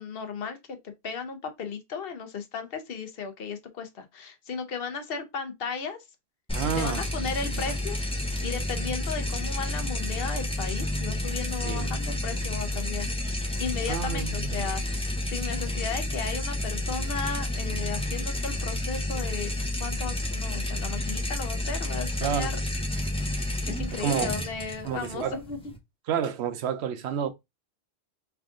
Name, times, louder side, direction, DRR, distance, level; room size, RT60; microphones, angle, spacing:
voice 1, 0.0-6.0 6.7-8.0 8.4-13.1 13.6-19.5 19.8-22.6 23.1-23.2 23.7-25.6, left 5 dB, 65° left, 0.9 m, -35 dB
sound 1, 6.5-25.8, left 1 dB, 5° left, 0.7 m, -30 dB
voice 2, 6.5-7.0 7.5-7.6 11.6-11.9 13.9-14.7 22.2-22.5 23.9-24.4 24.8-25.4 26.1-27.3, right 8 dB, 85° right, 0.9 m, -30 dB
3.5 x 2.4 x 3.6 m
omnidirectional pair, 1.1 m